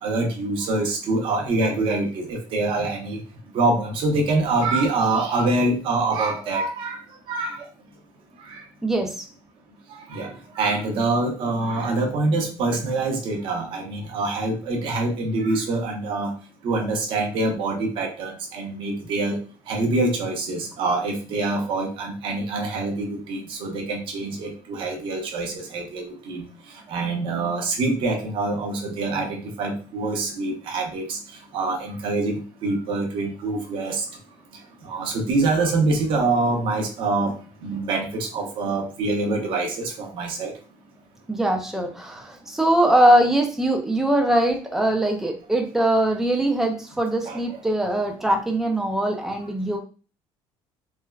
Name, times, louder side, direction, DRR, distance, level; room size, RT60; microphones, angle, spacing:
voice 1, 0.0-3.2 3.5-7.7 8.4-8.6 9.9-16.3 16.6-19.4 19.7-31.2 31.5-34.1 34.8-37.4 37.6-40.5 47.2-47.4, right 2 dB, 50° right, 2 dB, 0.7 m, -25 dB
voice 2, 8.8-9.2 41.3-49.8, right 1 dB, 5° right, 2 dB, 0.4 m, -21 dB
3.3 x 2.1 x 2.3 m, 0.37 s
cardioid pair, 160°, 11 cm